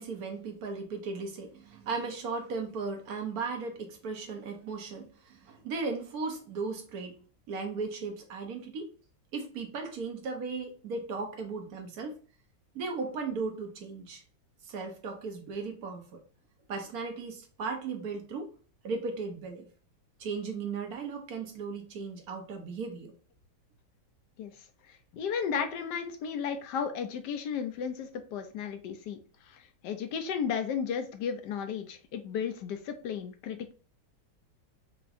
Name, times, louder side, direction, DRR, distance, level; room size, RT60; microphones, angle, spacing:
voice 1, 0.0-7.2 7.5-8.9 9.3-12.2 12.7-14.2 14.6-16.2 16.7-18.5 18.8-19.7 20.2-23.1, right 4 dB, 60° right, 3 dB, 1.3 m, -36 dB
voice 2, 24.9-29.2 29.4-33.7, left 7 dB, 75° left, 8 dB, 1.2 m, -34 dB
4.7 x 3.0 x 2.5 m, 0.38 s
omnidirectional pair, 1.9 m